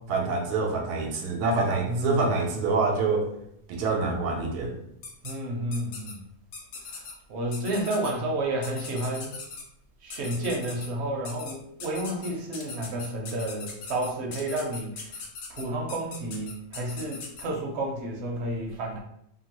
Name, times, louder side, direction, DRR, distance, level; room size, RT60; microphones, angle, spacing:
voice 1, 0.1-3.3 3.7-4.8, right 3 dB, 90° right, 3 dB, 1.1 m, -26 dB
voice 2, 1.9-2.2 5.2-6.2 6.9-7.0 7.3-9.3 10.0-15.1 15.5-19.0, right 1 dB, 60° right, 0 dB, 0.8 m, -31 dB
sound 1, 5.0-5.3 5.7-6.1 6.5-7.1 7.5-8.1 8.6-9.6 10.1-10.9 11.2-11.5 11.8-17.4, left 4 dB, 80° left, 1.2 m, -39 dB
2.9 x 2.3 x 2.9 m, 0.75 s
omnidirectional pair, 1.6 m